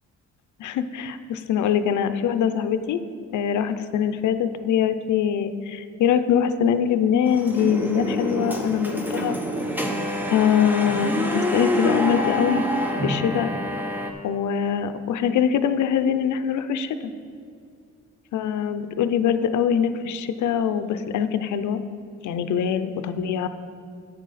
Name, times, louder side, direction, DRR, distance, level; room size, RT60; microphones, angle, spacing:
voice 1, 0.6-3.0 3.3-9.4 10.3-12.6 13.0-13.5 14.2-17.0 18.3-21.8 22.2-23.5, left 8 dB, 75° left, 11 dB, 0.6 m, -23 dB
sound 1, 7.3-14.1, left 1 dB, 5° right, 0.9 m, -27 dB
10.0 x 8.2 x 4.1 m, 2.3 s
cardioid pair, 120°, 30 cm